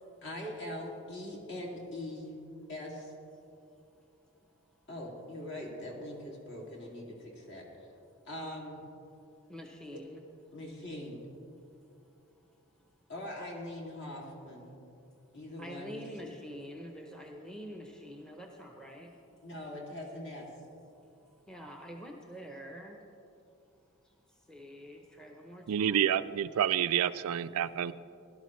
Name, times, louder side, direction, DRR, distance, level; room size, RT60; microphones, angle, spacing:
voice 1, 0.2-2.3 2.7-3.1 4.9-7.9 8.3-8.8 9.9-10.0 10.5-11.3 13.1-14.8 15.3-16.0 16.2-16.3 19.4-20.5, left 1 dB, 50° left, -2 dB, 2.4 m, -42 dB
voice 2, 9.5-10.2 15.6-19.2 21.3-23.0 24.0-26.1, equal, 5° left, 1 dB, 0.7 m, -46 dB
voice 3, 25.7-27.9, right 9 dB, 80° right, 14 dB, 0.3 m, -28 dB
17.5 x 11.5 x 3.2 m, 2.7 s
head